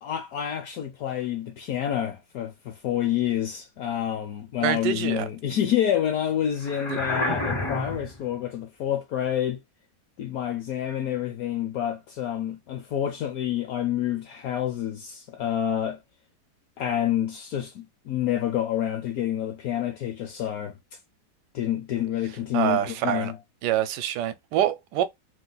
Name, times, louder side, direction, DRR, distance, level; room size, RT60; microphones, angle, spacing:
voice 1, 0.0-9.6 10.2-16.0 16.8-20.7 21.5-23.4, left 10 dB, 70° left, 0.9 m, -28 dB
voice 2, 4.6-5.2 6.9-7.0 22.5-23.3 23.6-25.0, right 11 dB, 80° right, 1.2 m, -25 dB
sound 1, 6.6-8.2, left 1 dB, 35° left, 0.4 m, -29 dB
3.0 x 2.3 x 3.8 m
omnidirectional pair, 1.9 m